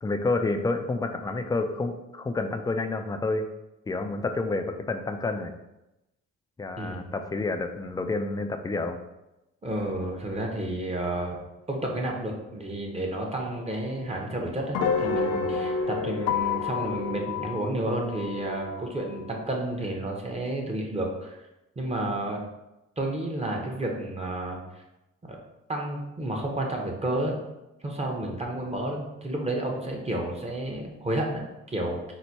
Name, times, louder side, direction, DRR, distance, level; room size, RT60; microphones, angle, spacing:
voice 1, 0.0-3.5 3.9-5.5 6.6-9.0, left 3 dB, 15° left, 6 dB, 0.3 m, -29 dB
voice 2, 9.6-11.4 11.7-21.4 21.8-22.4 23.0-24.6 25.2-25.4 25.7-27.3 27.8-32.0, right 1 dB, 20° right, 0 dB, 0.8 m, -31 dB
sound 1, 13.3-19.5, left 5 dB, 85° left, 0.5 m, -30 dB
4.0 x 2.1 x 4.5 m, 0.95 s
cardioid pair, 90°, 30 cm